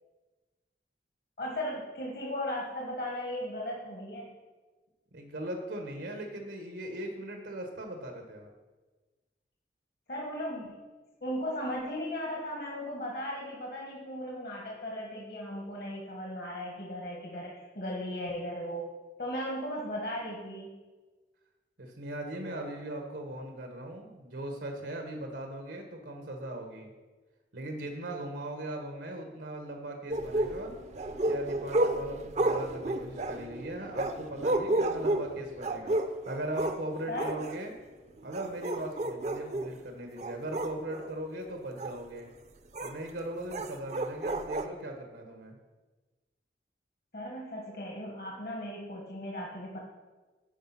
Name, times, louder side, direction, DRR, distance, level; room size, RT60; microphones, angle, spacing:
voice 1, 1.4-4.3 10.1-10.8 11.2-18.9 19.2-20.7 32.5-32.6 37.1-37.4 47.1-49.8, equal, 60° left, -2 dB, 1.6 m, -37 dB
voice 2, 5.1-8.5 21.8-26.9 27.5-30.7 31.2-35.9 36.3-37.7 38.2-42.3 42.8-45.5, right 1 dB, 85° right, 3 dB, 1.2 m, -39 dB
sound 1, 30.1-36.8 37.2-37.6 38.2-39.7 40.2-41.1 41.8-41.9 42.7-42.9 43.5-44.7, right 1 dB, 40° right, 0.5 m, -31 dB
10.0 x 4.9 x 5.7 m, 1.3 s
head